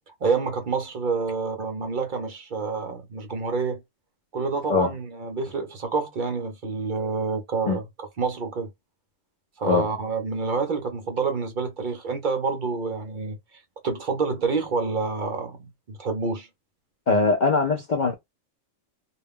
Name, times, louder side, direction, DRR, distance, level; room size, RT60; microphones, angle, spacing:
voice 1, 0.1-3.8 4.3-8.7 9.6-13.4 13.8-16.5, right 4 dB, 50° right, 0.6 m, -28 dB
voice 2, 17.1-18.1, left 4 dB, 60° left, 0.4 m, -21 dB
2.4 x 2.2 x 3.5 m
omnidirectional pair, 1.3 m